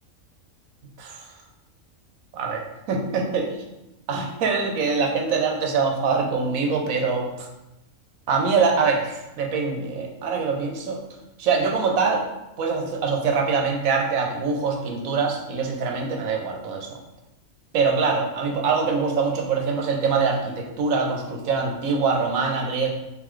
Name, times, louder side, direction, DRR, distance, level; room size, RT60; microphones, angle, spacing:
voice 1, 2.3-3.5 4.1-7.5 8.3-11.0 11.4-12.2 12.6-17.0 17.7-22.9, right 5 dB, 85° right, 1 dB, 1.1 m, -24 dB
3.8 x 3.6 x 3.2 m, 0.95 s
omnidirectional pair, 1.4 m